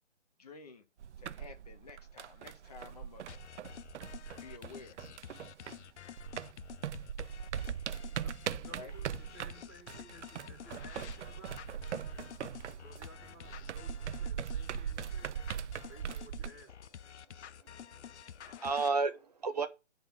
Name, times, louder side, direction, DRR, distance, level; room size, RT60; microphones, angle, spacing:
voice 1, 0.4-0.8 1.2-3.2 4.4-5.0 8.7-8.9, left 4 dB, 35° left, 1.1 m, -51 dB
sound 1, 1.0-5.9 6.2-16.5, right 9 dB, 80° right, 0.5 m, -40 dB
sound 2, 3.3-18.9, left 9 dB, 75° left, 0.5 m, -50 dB
voice 2, 8.1-11.6 12.7-15.4 15.9-16.9, right 1 dB, 10° left, 0.7 m, -56 dB
sound 3, 9.0-15.9, right 2 dB, 15° right, 4.4 m, -69 dB
voice 3, 17.3-19.7, right 4 dB, 35° right, 0.6 m, -34 dB
8.8 x 4.1 x 6.9 m
hypercardioid pair, 170°, 35 cm